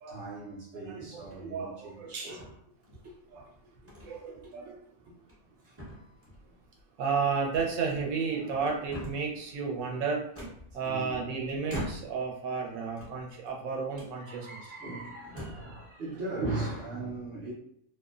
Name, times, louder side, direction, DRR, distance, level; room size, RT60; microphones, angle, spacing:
voice 1, 0.1-2.5 3.0-3.1 4.4-4.7 5.6-6.1 10.8-11.2 14.2-17.5, right 2 dB, 55° right, 0.7 m, -39 dB
voice 2, 0.7-2.3 3.3-3.5 4.1-4.8 7.0-10.3 10.7-14.7, right 5 dB, 80° right, 1.1 m, -33 dB
sound 1, 1.2-1.6 2.4-3.1 3.9-4.1 4.5-4.6 5.1-5.5 5.8-6.5 7.5-8.3 8.6-9.4 10.3-11.2 11.7-12.3 12.9-13.6 13.9-14.2 14.8-14.9 15.2-15.7, equal, 20° right, 0.3 m, -42 dB
2.5 x 2.1 x 2.3 m
omnidirectional pair, 1.5 m